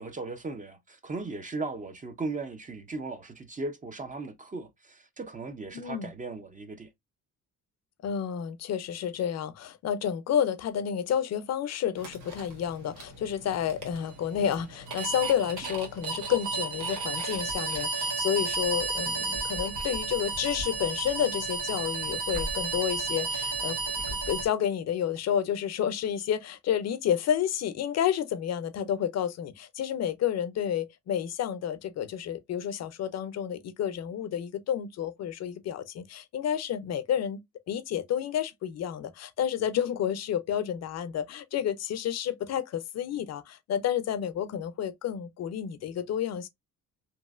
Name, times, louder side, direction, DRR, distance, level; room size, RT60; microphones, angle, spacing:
voice 1, 0.0-6.9, right 3 dB, 25° right, 0.6 m, -37 dB
voice 2, 5.7-6.1 8.0-37.4 37.7-46.5, left 9 dB, 60° left, 0.5 m, -30 dB
sound 1, 12.0-24.4, right 3 dB, 85° right, 1.2 m, -33 dB
3.0 x 2.6 x 2.4 m
cardioid pair, 90°, 30 cm